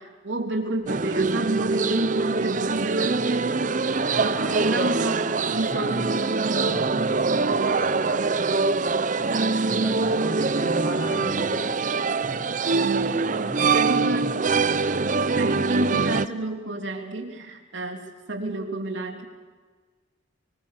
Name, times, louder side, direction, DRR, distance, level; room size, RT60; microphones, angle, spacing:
voice 1, 0.0-3.6 4.1-6.2 13.4-14.4 15.3-19.3, right 2 dB, 90° right, 3 dB, 3.2 m, -30 dB
sound 1, 0.9-16.3, right 4 dB, 45° right, 0.7 m, -24 dB
voice 2, 3.9-5.0 5.5-6.2 6.6-9.2 9.7-11.7 13.2-14.3, equal, 15° left, -1 dB, 7.6 m, -36 dB
25.0 x 21.5 x 6.7 m, 1.4 s
head